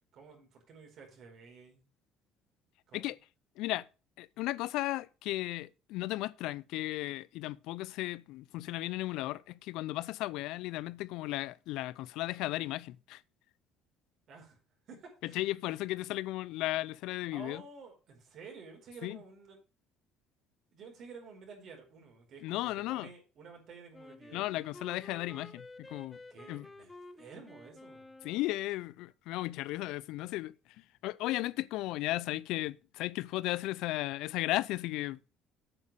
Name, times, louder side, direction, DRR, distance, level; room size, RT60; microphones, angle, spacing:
voice 1, 0.1-1.8 2.9-3.1 14.3-14.6 14.8-15.4 17.3-19.6 20.7-24.5 26.3-28.1, right 4 dB, 60° right, 4.8 m, -51 dB
voice 2, 3.6-3.9 4.2-13.2 15.2-17.6 19.0-19.2 22.4-23.1 24.3-26.2 26.5-26.7 28.2-35.2, left 17 dB, 75° left, 0.5 m, -35 dB
Wind instrument woodwind instrument, 23.9-28.7, left 2 dB, 20° left, 1.2 m, -51 dB
8.8 x 6.4 x 6.6 m
supercardioid pair, 75°, 0 cm